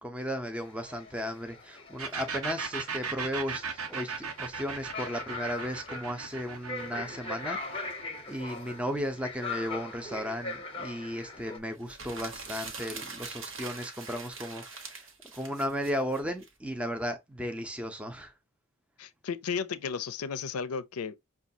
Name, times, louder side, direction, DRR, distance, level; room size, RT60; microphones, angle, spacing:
voice 1, 0.0-7.9 8.3-18.3, equal, 5° right, 0.5 m, -35 dB
sound 1, 0.5-11.6, left 3 dB, 25° left, 0.8 m, -41 dB
sound 2, 2.0-9.5, right 5 dB, 85° right, 1.0 m, -37 dB
sound 3, 11.8-16.5, right 4 dB, 60° right, 1.0 m, -43 dB
voice 2, 19.0-21.2, left 6 dB, 85° left, 0.5 m, -34 dB
6.0 x 2.3 x 2.7 m
head